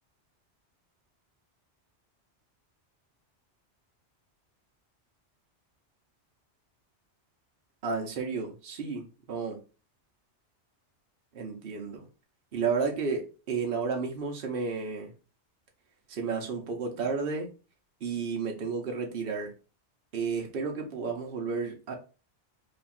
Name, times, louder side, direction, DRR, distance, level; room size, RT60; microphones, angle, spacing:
voice 1, 7.8-9.6 11.3-12.1 12.5-15.1 16.1-17.5 18.0-19.5 20.1-21.9, right 5 dB, 55° right, 2 dB, 1.0 m, -32 dB
3.0 x 2.3 x 4.1 m, 0.33 s
omnidirectional pair, 1.2 m